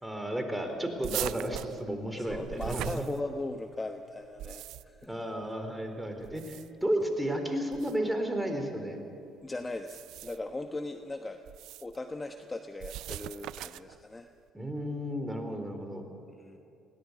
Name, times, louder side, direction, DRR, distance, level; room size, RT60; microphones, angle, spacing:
voice 1, 0.0-3.0 5.1-9.1 14.5-16.1, right 1 dB, 5° right, 5 dB, 4.0 m, -33 dB
sound 1, 1.0-3.7 4.2-5.1 6.2-6.9 7.7-8.0 9.7-10.5 11.5-12.0 12.8-14.0, right 14 dB, 70° right, 0.4 m, -40 dB
voice 2, 2.2-5.1 9.4-11.4 11.8-14.3 16.4-16.6, left 2 dB, 20° left, 7 dB, 1.1 m, -39 dB
20.5 x 17.5 x 8.1 m, 2.7 s
hypercardioid pair, 55°, 0 cm